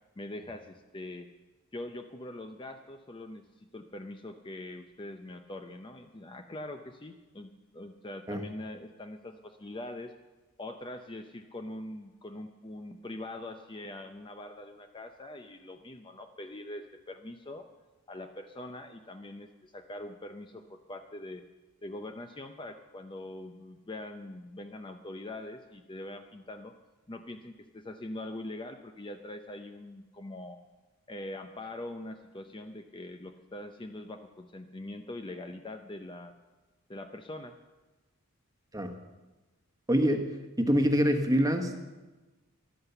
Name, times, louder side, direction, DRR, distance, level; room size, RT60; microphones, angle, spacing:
voice 1, 0.2-1.3 1.7-10.1 10.6-17.6 18.1-21.4 21.8-26.7 27.1-30.6 31.1-36.3 36.9-37.6, left 1 dB, 20° left, 6 dB, 0.6 m, -43 dB
voice 2, 39.9-40.3 40.6-41.7, equal, 15° right, 5 dB, 1.2 m, -25 dB
14.0 x 11.5 x 6.8 m, 1.2 s
head